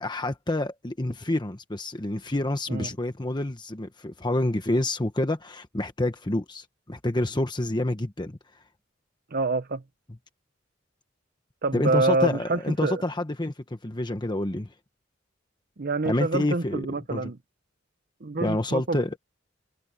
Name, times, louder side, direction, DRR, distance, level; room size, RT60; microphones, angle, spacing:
voice 1, 0.0-8.4 11.7-14.7 16.0-16.8 17.1-17.3 18.4-19.2, left 1 dB, 25° left, 1.2 m, -28 dB
voice 2, 9.3-9.8 11.6-13.0 15.8-17.4 18.2-19.0, right 3 dB, 50° right, 0.8 m, -26 dB
head